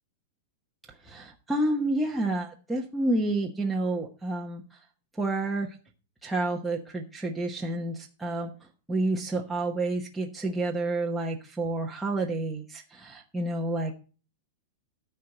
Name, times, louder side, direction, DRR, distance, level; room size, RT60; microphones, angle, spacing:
voice 1, 1.1-4.6 5.2-5.7 6.2-8.5 8.9-14.0, right 2 dB, 5° right, -2 dB, 1.0 m, -29 dB
13.5 x 4.6 x 6.5 m, 0.36 s
supercardioid pair, 165°, 0 cm